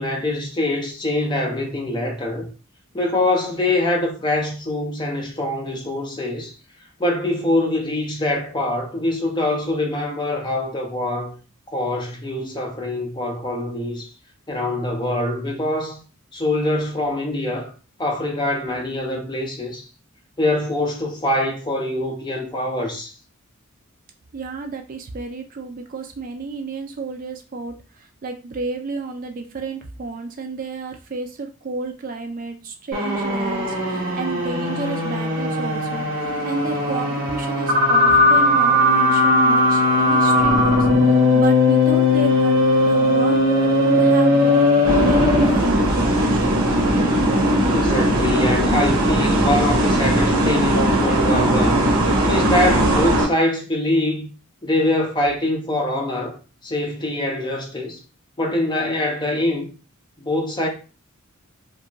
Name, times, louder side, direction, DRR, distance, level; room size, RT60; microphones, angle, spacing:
voice 1, 0.0-2.5 2.9-6.5 7.0-11.4 11.7-14.1 14.5-16.0 16.3-17.7 18.0-19.9 20.4-23.1 47.7-51.9 52.3-54.3 54.6-56.4 56.6-58.0 58.4-59.7 60.2-60.7, left 1 dB, 20° left, 0.6 m, -24 dB
voice 2, 24.3-43.4 43.8-46.7, right 3 dB, 40° right, 0.3 m, -31 dB
sound 1, 32.9-45.6, left 2 dB, 60° right, 1.0 m, -18 dB
sound 2, 44.8-53.3, right 1 dB, 85° right, 0.9 m, -18 dB
2.5 x 2.5 x 2.9 m
head